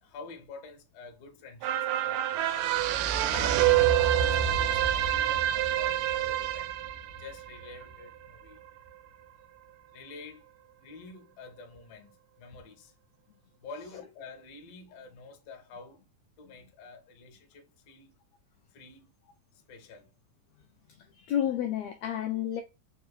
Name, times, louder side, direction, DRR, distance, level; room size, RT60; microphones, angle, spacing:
voice 1, 0.0-2.7 3.2-6.7 7.2-8.6 9.9-10.4 10.8-12.9 13.5-16.0 16.4-18.2 18.7-19.1 19.5-20.1, left 4 dB, 65° left, 1.8 m, -47 dB
sound 1, 1.6-8.3 8.7-8.8, right 11 dB, 90° right, 2.1 m, -27 dB
voice 2, 21.0-22.6, left 10 dB, 85° left, 1.5 m, -31 dB
4.7 x 3.2 x 2.2 m
omnidirectional pair, 3.6 m